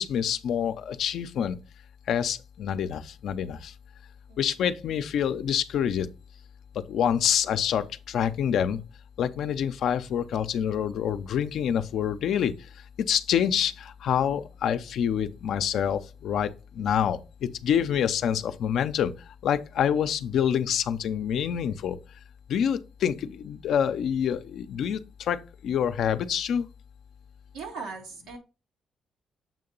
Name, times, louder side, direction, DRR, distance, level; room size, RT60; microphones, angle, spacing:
voice 1, 0.0-1.6 2.1-3.7 4.4-6.1 6.7-8.8 9.2-12.7 13.0-19.1 19.4-22.0 22.5-26.7, left 8 dB, 70° left, 0.5 m, -27 dB
voice 2, 27.5-28.4, right 4 dB, 90° right, 1.8 m, -39 dB
7.3 x 2.8 x 5.3 m
cardioid pair, 90°, 0 cm